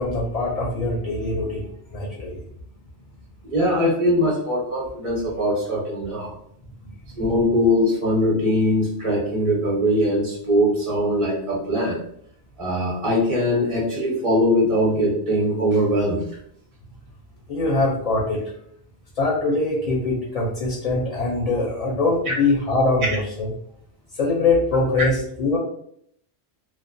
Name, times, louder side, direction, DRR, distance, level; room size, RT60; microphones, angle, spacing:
voice 1, 0.0-1.7 1.9-2.4 6.8-6.9 17.5-18.6 19.2-23.5 24.1-25.6, left 2 dB, 50° left, -4 dB, 0.5 m, -23 dB
voice 2, 3.4-6.4 7.2-12.0 12.6-16.3 22.3-22.4, equal, 35° right, -6 dB, 0.8 m, -21 dB
2.3 x 2.1 x 2.5 m, 0.68 s
omnidirectional pair, 1.1 m